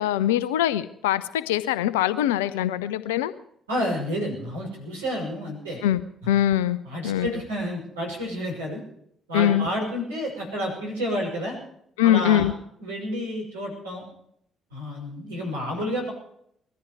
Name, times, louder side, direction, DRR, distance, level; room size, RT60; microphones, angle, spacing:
voice 1, 0.0-3.3 5.8-6.8 7.0-7.3 9.3-9.7 12.0-12.5, left 12 dB, 75° left, 15 dB, 0.7 m, -22 dB
voice 2, 3.7-5.8 6.8-8.8 9.3-11.6 12.0-12.5 12.8-14.0 14.7-16.1, equal, 80° right, -3 dB, 6.1 m, -30 dB
21.0 x 13.5 x 4.8 m, 0.70 s
figure-of-eight pair, 45°, 0 cm